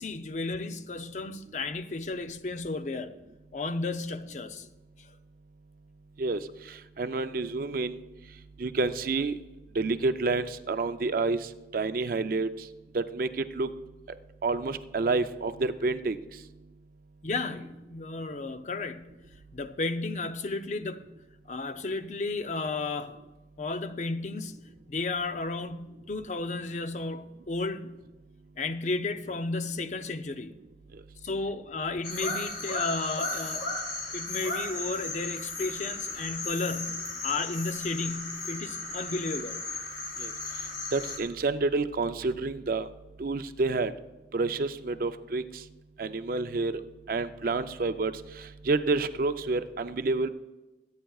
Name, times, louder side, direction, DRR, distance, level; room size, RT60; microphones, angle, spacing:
voice 1, 0.0-3.1 3.5-4.7 5.0-5.1 17.2-19.1 19.5-21.0 21.5-23.2 23.6-24.6 24.9-28.0 28.6-30.6 31.2-33.8 34.1-39.6, left 3 dB, 45° left, 0.5 m, -33 dB
voice 2, 7.0-8.0 8.6-9.3 9.8-11.4 11.7-12.5 12.9-13.7 14.4-16.2 40.2-40.3 40.9-42.9 43.2-43.9 44.3-45.4 46.0-46.7 47.1-48.1 48.6-50.3, right 3 dB, 50° right, 0.5 m, -28 dB
sound 1, 32.0-41.2, left 2 dB, 80° left, 2.3 m, -35 dB
22.5 x 9.0 x 2.4 m
head